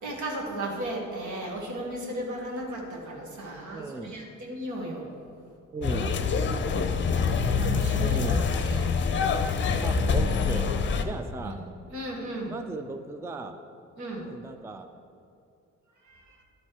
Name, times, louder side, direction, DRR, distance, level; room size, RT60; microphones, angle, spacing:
voice 1, 0.0-5.1 7.5-8.9 11.4-11.6 11.9-12.5 14.0-14.3 16.0-16.4, right 1 dB, 75° right, -1 dB, 1.8 m, -35 dB
voice 2, 3.7-4.2 5.7-6.2 8.0-8.5 9.8-10.7 11.0-11.6 12.5-13.6 14.2-14.9, right 3 dB, 10° right, 7 dB, 0.4 m, -36 dB
sound 1, 5.8-11.0, left 5 dB, 40° left, 0.6 m, -25 dB
11.5 x 4.3 x 4.7 m, 2.5 s
cardioid pair, 90°, 30 cm